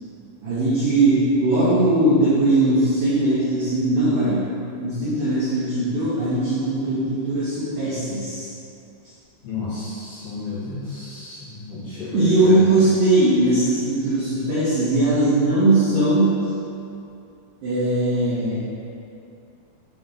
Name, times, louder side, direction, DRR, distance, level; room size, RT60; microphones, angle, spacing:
voice 1, 0.4-4.5 4.8-8.5 12.1-16.3 17.6-18.6, right 2 dB, 80° right, -9 dB, 2.0 m, -19 dB
voice 2, 9.4-12.6, left 3 dB, 70° left, -12 dB, 2.2 m, -32 dB
7.7 x 3.9 x 3.7 m, 2.6 s
omnidirectional pair, 5.3 m